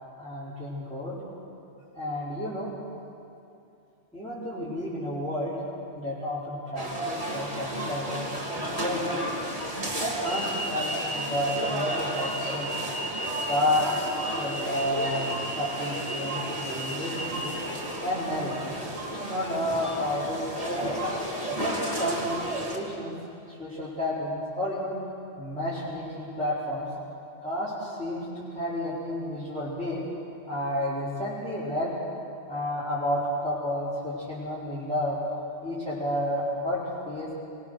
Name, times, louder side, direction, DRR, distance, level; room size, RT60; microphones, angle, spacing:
voice 1, 0.2-1.2 1.9-2.7 4.1-5.5 6.0-9.3 10.0-10.5 10.7-12.7 13.5-15.3 15.6-17.5 18.0-18.5 19.1-21.0 21.5-23.1 23.5-24.9 25.4-26.8 27.4-30.0 30.5-31.9 32.5-35.2 35.6-36.8 37.1-37.3, left 1 dB, 5° left, -11 dB, 4.6 m, -31 dB
sound 1, 6.8-22.8, right 1 dB, 30° right, 2.6 m, -32 dB
25.0 x 20.0 x 6.6 m, 2.6 s
omnidirectional pair, 1.3 m